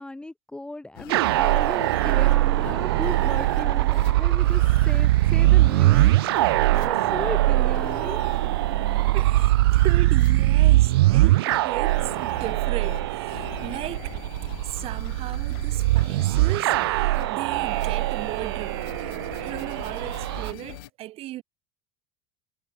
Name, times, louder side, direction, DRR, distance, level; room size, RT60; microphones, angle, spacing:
voice 1, 0.0-8.2, left 2 dB, 5° left, 1.0 m, -36 dB
sound 1, 0.9-20.9, left 21 dB, 70° left, 7.4 m, -43 dB
sound 2, 1.1-20.5, right 18 dB, 75° right, 0.5 m, -22 dB
voice 2, 9.1-14.2 14.6-21.4, right 15 dB, 50° right, 4.1 m, -36 dB
hypercardioid pair, 85°, 13 cm